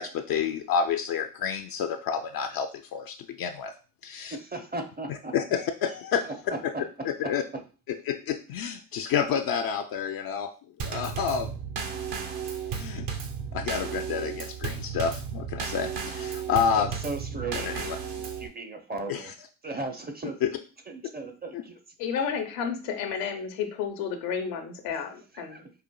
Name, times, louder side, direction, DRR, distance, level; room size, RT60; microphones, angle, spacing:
voice 1, 0.0-3.7 4.0-4.4 5.3-6.3 7.1-7.4 8.1-10.5 10.8-11.5 12.7-13.1 13.5-16.9 17.5-18.0 19.1-19.2 21.5-21.6, left 7 dB, 50° left, 6 dB, 0.5 m, -29 dB
voice 2, 4.2-5.4 6.2-7.6 16.8-19.3 19.6-20.4 20.9-21.8 24.9-25.0 25.3-25.7, right 2 dB, 20° right, 6 dB, 0.6 m, -37 dB
Drum kit / Snare drum / Bass drum, 10.8-18.5, right 6 dB, 60° right, 0.9 m, -34 dB
voice 3, 22.0-25.6, left 7 dB, 80° left, 5 dB, 0.8 m, -31 dB
5.1 x 2.4 x 2.2 m, 0.36 s
hypercardioid pair, 60°, 48 cm